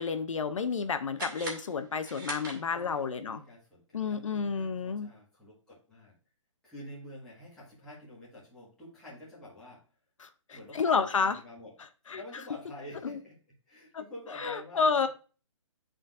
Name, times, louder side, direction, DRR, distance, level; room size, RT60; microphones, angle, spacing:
voice 1, 0.0-3.4 3.9-5.1 10.2-11.4 12.1-12.2 13.0-13.1 14.4-15.1, left 5 dB, 70° left, 9 dB, 0.6 m, -30 dB
sound 1, 1.1-3.1, right 2 dB, 40° right, 1.8 m, -41 dB
voice 2, 2.7-6.1 6.6-9.8 10.5-11.7 12.1-13.4 13.7-15.1, left 1 dB, 5° left, -9 dB, 1.5 m, -48 dB
11.0 x 3.8 x 2.5 m, 0.37 s
hypercardioid pair, 180°, 17 cm